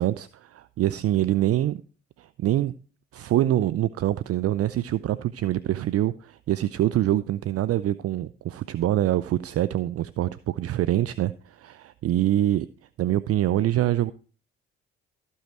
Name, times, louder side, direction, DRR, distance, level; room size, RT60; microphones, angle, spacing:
voice 1, 0.0-1.8 2.2-2.7 3.1-12.7 13.0-14.1, right 13 dB, 50° right, 16 dB, 0.6 m, -25 dB
15.0 x 5.6 x 4.5 m, 0.37 s
hypercardioid pair, 50°, 32 cm